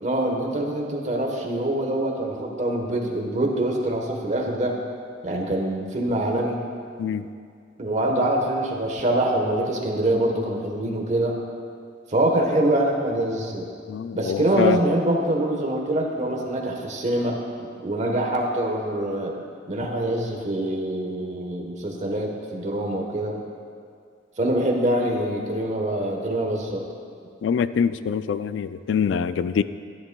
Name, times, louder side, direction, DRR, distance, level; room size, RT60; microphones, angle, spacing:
voice 1, 0.0-4.8 5.2-6.6 7.8-11.4 12.1-13.7 14.1-19.4 19.7-23.4 24.4-26.8, right 1 dB, 40° right, 1 dB, 1.1 m, -24 dB
voice 2, 13.9-14.8 27.4-29.6, left 7 dB, 80° left, 14 dB, 0.3 m, -24 dB
13.0 x 11.0 x 2.3 m, 2.2 s
head